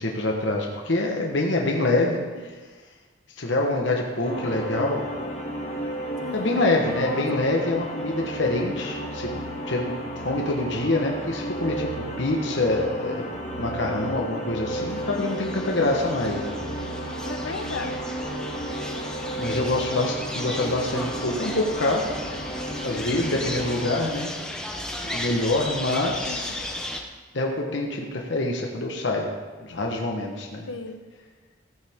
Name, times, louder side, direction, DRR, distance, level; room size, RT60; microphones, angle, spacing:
voice 1, 0.0-2.5 3.4-5.0 6.3-9.3 9.7-11.9 12.2-13.3 13.6-16.5 19.4-22.1 22.8-24.3 25.1-26.8 27.3-29.3 29.6-30.7, left 2 dB, 65° left, 0 dB, 1.2 m, -26 dB
sound 1, 4.2-23.9, right 1 dB, 35° left, 2.1 m, -33 dB
voice 2, 6.2-7.2 17.2-18.0 26.3-26.4 30.7-31.0, left 3 dB, 90° left, 7 dB, 1.0 m, -35 dB
sound 2, 14.9-27.0, left 1 dB, 5° left, 0.8 m, -35 dB
15.5 x 9.4 x 3.6 m, 1.4 s
head